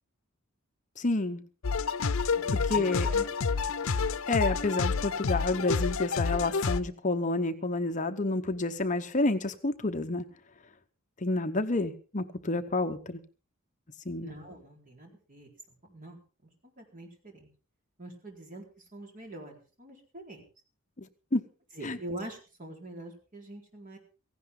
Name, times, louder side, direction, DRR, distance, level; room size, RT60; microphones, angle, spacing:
voice 1, 1.0-1.4 2.6-3.1 4.3-10.2 11.2-13.2 14.1-14.3 21.3-21.4 21.8-22.0, left 2 dB, 35° left, 8 dB, 0.9 m, -29 dB
sound 1, 1.6-6.8, left 5 dB, 75° left, 0.7 m, -29 dB
voice 2, 2.3-3.3 14.2-15.5 15.9-16.2 16.8-17.5 18.0-18.7 18.9-20.4 21.7-24.0, right 1 dB, 40° right, 1 dB, 4.2 m, -44 dB
16.5 x 16.0 x 3.8 m, 0.35 s
head